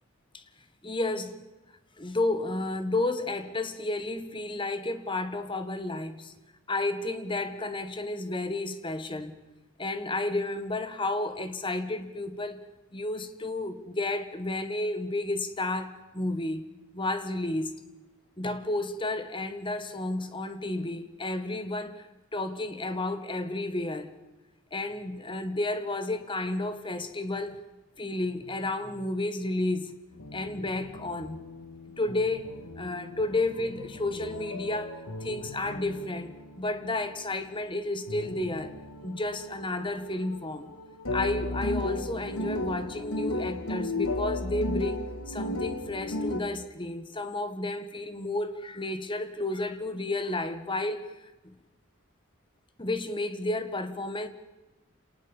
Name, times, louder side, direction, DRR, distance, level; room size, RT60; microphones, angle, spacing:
voice 1, 0.8-1.4 2.0-6.3 6.7-9.3 9.8-12.6 12.9-16.7 16.9-17.8 18.4-22.0 22.3-24.1 24.7-27.6 28.0-29.9 30.3-31.4 32.0-32.5 32.8-38.7 39.0-40.7 41.1-51.1 51.4-51.5 52.8-54.3, left 2 dB, 20° left, 1.7 m, -32 dB
sound 1, 30.1-46.4, left 1 dB, 90° left, 2.1 m, -36 dB
27.5 x 19.0 x 7.2 m
head